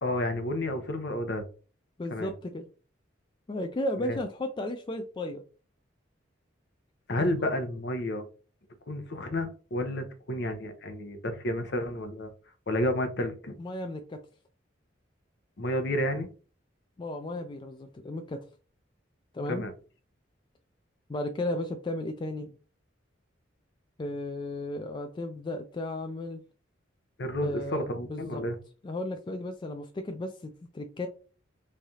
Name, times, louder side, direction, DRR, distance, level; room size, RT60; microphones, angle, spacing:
voice 1, 0.0-1.4 2.1-2.3 4.0-4.2 7.1-8.3 8.9-12.3 12.7-13.6 15.6-16.3 19.5-19.7 27.2-28.6, left 1 dB, 60° left, 7 dB, 0.7 m, -31 dB
voice 2, 2.0-2.7 3.5-5.4 7.1-7.2 13.6-14.2 17.0-18.4 19.3-19.7 21.1-22.5 24.0-26.4 27.4-27.8 28.1-28.4 28.8-31.1, left 1 dB, 25° left, 5 dB, 0.3 m, -34 dB
3.5 x 3.2 x 2.8 m, 0.38 s
head